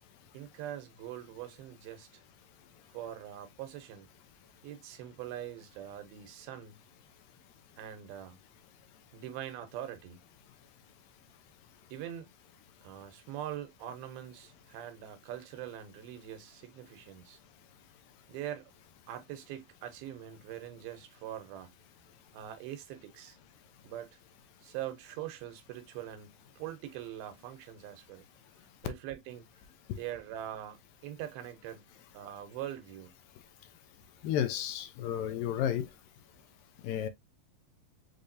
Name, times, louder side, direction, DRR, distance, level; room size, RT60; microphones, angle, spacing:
voice 1, 0.3-2.2 2.9-4.1 4.6-6.8 7.8-8.4 9.1-10.2 11.9-12.3 12.8-17.4 18.3-18.7 19.1-21.7 22.3-23.4 23.8-24.2 24.6-28.2 28.8-29.5 30.0-31.9 32.1-33.1, right 11 dB, 85° right, 2.8 m, -43 dB
voice 2, 34.2-35.9 36.8-37.1, left 10 dB, 80° left, 2.2 m, -32 dB
6.5 x 2.9 x 2.6 m
omnidirectional pair, 4.2 m